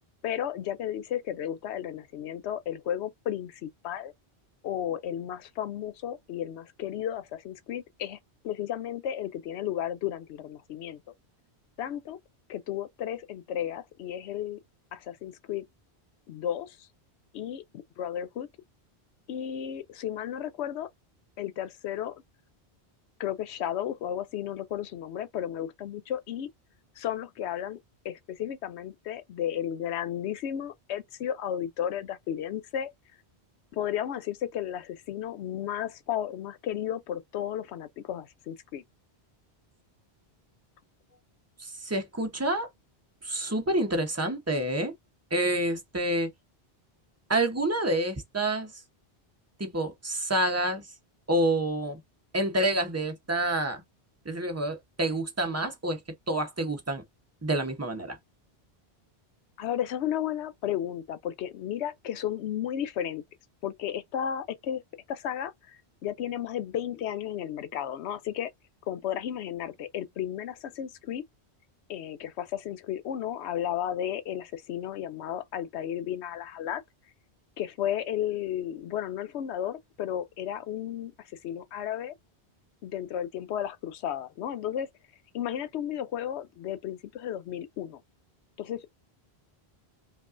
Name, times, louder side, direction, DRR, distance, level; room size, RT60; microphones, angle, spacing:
voice 1, 0.2-4.1 4.6-8.2 8.4-11.0 11.8-12.2 12.5-14.6 14.9-15.6 16.3-16.9 17.3-18.5 19.3-20.9 21.4-22.1 23.2-26.5 27.0-27.8 28.0-32.9 33.7-38.8 59.6-63.2 63.6-64.8 65.1-68.5 68.9-71.2 71.9-76.8 77.6-82.1 82.8-84.9 85.3-88.0 88.6-88.9, left 10 dB, 90° left, 0.9 m, -33 dB
voice 2, 41.6-42.7 43.2-44.9 45.3-46.3 47.3-48.7 49.6-50.8 51.3-52.0 52.3-53.8 54.2-56.0 56.3-57.0 57.4-58.2, right 1 dB, 15° right, 0.8 m, -28 dB
5.2 x 2.3 x 2.5 m
omnidirectional pair, 1.1 m